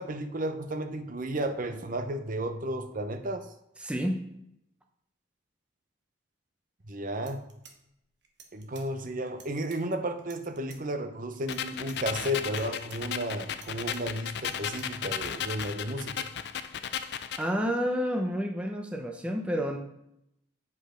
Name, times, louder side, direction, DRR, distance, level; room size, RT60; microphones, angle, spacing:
voice 1, 0.0-3.5 6.9-7.5 8.5-16.3, right 1 dB, 45° right, 8 dB, 0.7 m, -33 dB
voice 2, 3.8-4.2 17.4-19.8, equal, 5° right, 3 dB, 0.6 m, -29 dB
sound 1, 6.8-6.9 7.1-8.9 9.3-9.8 10.2-10.8 11.3-12.0 12.3-13.0 13.5-14.9 15.2-15.7, right 6 dB, 60° right, 1.2 m, -52 dB
sound 2, 11.5-17.5, left 8 dB, 60° left, 0.4 m, -35 dB
8.3 x 5.1 x 5.0 m, 0.80 s
head